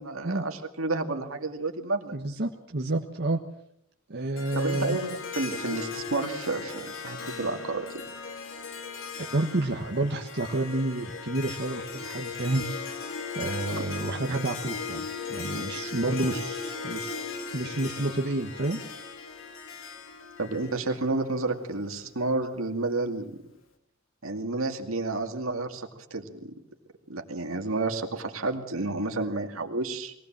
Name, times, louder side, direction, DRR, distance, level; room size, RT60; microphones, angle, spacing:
voice 1, 0.0-2.2 4.5-8.0 20.4-23.4 24.2-26.5 27.1-30.1, right 3 dB, 80° right, 5 dB, 2.3 m, -31 dB
voice 2, 2.1-3.4 4.1-5.0 9.2-17.1 17.5-18.8, right 2 dB, 55° right, 2 dB, 1.4 m, -30 dB
Harp, 4.4-21.6, left 5 dB, 70° left, 2.7 m, -38 dB
22.0 x 17.5 x 7.4 m, 0.74 s
head